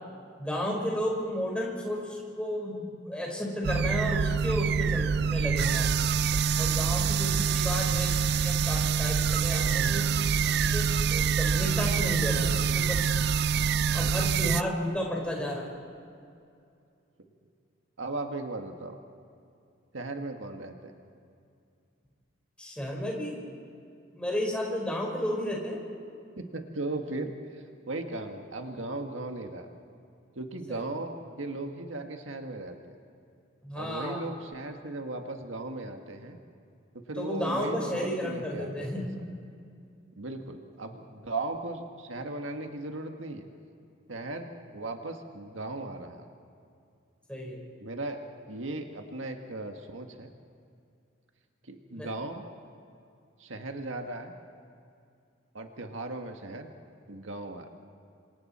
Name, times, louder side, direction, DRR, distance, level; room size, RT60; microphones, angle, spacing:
voice 1, 0.4-6.1 6.6-10.2 10.6-13.1 13.9-15.7 22.6-23.4 24.1-25.8 30.7-30.8 33.6-34.2 37.2-39.0 47.3-47.6 51.9-52.1, left 1 dB, 5° left, -2 dB, 4.6 m, -33 dB
sound 1, 3.6-14.6, right 6 dB, 55° right, 0.4 m, -26 dB
voice 2, 18.0-19.0 19.9-20.9 26.3-29.7 30.3-32.9 33.7-36.4 37.1-38.9 40.2-43.5 44.1-46.2 47.8-50.3 51.6-52.5 53.4-54.3 55.5-56.7 57.1-57.7, right 2 dB, 85° right, 4 dB, 1.7 m, -37 dB
28.5 x 25.5 x 4.3 m, 2.4 s
head